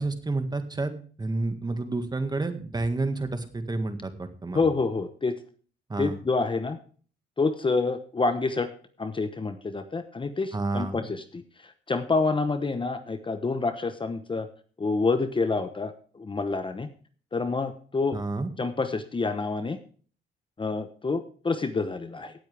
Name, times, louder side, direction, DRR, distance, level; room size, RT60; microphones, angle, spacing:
voice 1, 0.0-4.7 5.9-6.2 10.5-11.0 18.1-18.5, right 2 dB, 20° right, 8 dB, 1.9 m, -30 dB
voice 2, 4.5-5.3 6.0-6.8 7.4-8.7 9.0-14.5 14.8-16.9 17.3-18.2 18.6-19.8 20.6-22.3, left 3 dB, 25° left, 10 dB, 1.0 m, -28 dB
17.5 x 8.4 x 3.5 m, 0.42 s
cardioid pair, 90°, 20 cm